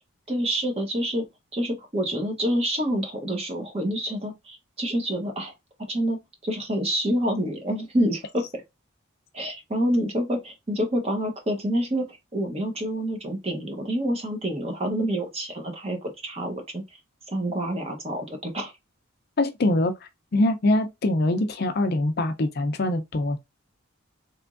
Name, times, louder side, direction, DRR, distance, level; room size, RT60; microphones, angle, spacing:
voice 1, 0.3-1.2 1.5-5.5 5.9-6.2 6.4-8.4 9.3-16.8 17.3-18.7, equal, 30° right, 0.9 m, -27 dB
voice 2, 19.4-23.4, left 1 dB, 50° left, 0.5 m, -24 dB
3.4 x 3.0 x 2.4 m
head